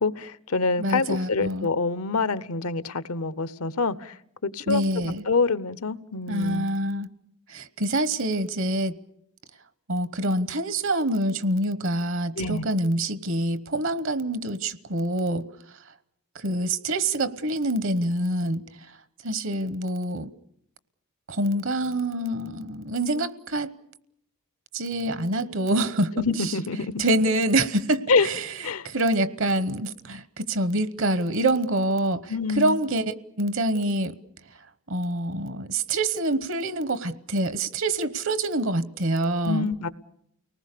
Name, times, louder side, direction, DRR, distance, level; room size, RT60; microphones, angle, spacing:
voice 1, 0.0-4.2 4.4-6.7 12.3-12.6 26.2-27.0 28.1-28.3 28.6-28.9 32.3-32.8 39.4-39.9, left 4 dB, 75° left, 0.9 m, -26 dB
voice 2, 0.8-1.7 4.7-5.2 6.3-7.1 7.5-9.0 9.9-15.5 16.3-18.6 19.2-20.3 21.3-23.7 24.7-26.1 26.4-26.5 27.0-28.5 28.8-34.2 34.9-39.7, right 1 dB, 60° right, 1.0 m, -26 dB
30.0 x 19.5 x 6.7 m
head